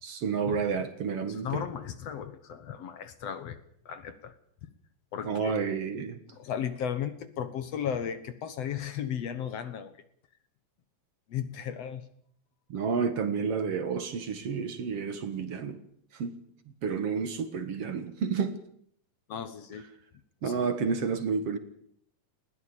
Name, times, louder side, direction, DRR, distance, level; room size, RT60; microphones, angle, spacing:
voice 1, 0.0-1.6 5.2-6.2 12.7-15.8 16.1-16.4 16.8-18.6 20.4-21.6, right 5 dB, 55° right, 10 dB, 2.4 m, -30 dB
voice 2, 1.3-3.6 3.9-4.4 5.1-5.6 6.3-9.9 11.3-12.0 19.3-19.9 20.4-20.7, left 8 dB, 60° left, 12 dB, 2.1 m, -35 dB
20.5 x 16.0 x 8.6 m, 0.66 s
omnidirectional pair, 3.5 m